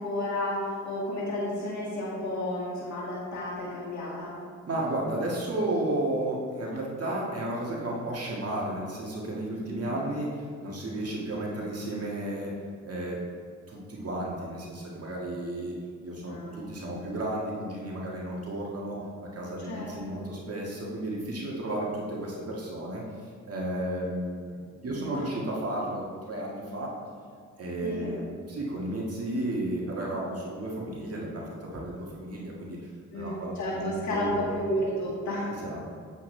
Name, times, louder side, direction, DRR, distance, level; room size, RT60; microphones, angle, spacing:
voice 1, 0.0-4.4 9.6-9.9 16.3-16.6 19.7-20.3 24.8-25.3 25.6-25.7 27.8-28.1 33.1-35.6, left 1 dB, 65° left, -6 dB, 2.1 m, -32 dB
voice 2, 4.6-12.5 12.8-13.2 13.7-15.7 16.0-23.0 23.4-26.9 27.6-32.8 33.1-34.7 35.5-35.8, right 1 dB, 50° right, -4 dB, 1.9 m, -33 dB
8.3 x 7.3 x 3.3 m, 2.1 s
supercardioid pair, 50°, 30 cm